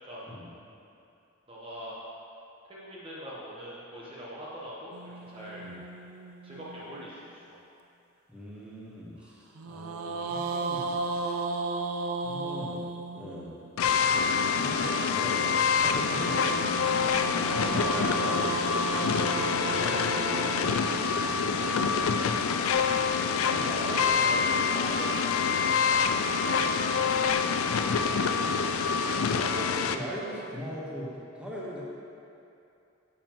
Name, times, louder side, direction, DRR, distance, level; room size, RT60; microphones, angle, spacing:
voice 1, 1.5-2.0 2.6-5.7 6.4-7.6 9.2-9.4 14.5-14.9 17.1-19.4 19.6-20.8 21.5-22.7 23.5-28.3, equal, 25° right, -7 dB, 1.0 m, -42 dB
sound 1, 4.9-7.3 9.5-13.7 15.8-22.0, right 2 dB, 90° right, 0.5 m, -35 dB
voice 2, 8.3-10.9 12.2-12.8 13.1-13.5 14.6-16.7 21.5-21.7 23.5-24.9 28.9-31.8, equal, 5° right, -7 dB, 1.1 m, -40 dB
sound 2, 13.8-30.0, left 5 dB, 85° left, 0.4 m, -26 dB
9.3 x 7.3 x 3.0 m, 2.7 s
head